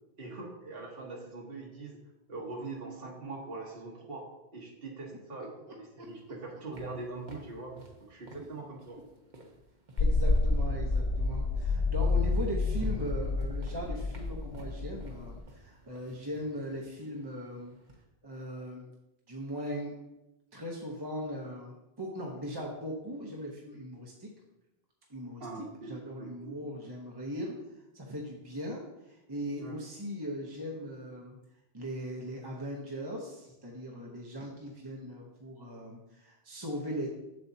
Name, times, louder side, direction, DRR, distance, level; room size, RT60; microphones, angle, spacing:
voice 1, 0.2-2.0 2.3-7.7 8.0-9.0 25.4-26.5 29.6-29.8, right 3 dB, 70° right, -2 dB, 1.4 m, -42 dB
sound 1, 6.0-10.6 11.9-12.0 12.4-18.0, equal, 50° right, 1.1 m, -47 dB
sound 2, 10.0-15.4, left 3 dB, 55° left, 0.4 m, -29 dB
voice 2, 10.0-17.7 18.2-18.9 19.3-20.0 20.5-24.3 25.1-27.5 27.9-31.4 31.7-37.1, equal, 25° right, -1 dB, 0.9 m, -39 dB
7.6 x 7.1 x 2.7 m, 0.94 s
omnidirectional pair, 1.0 m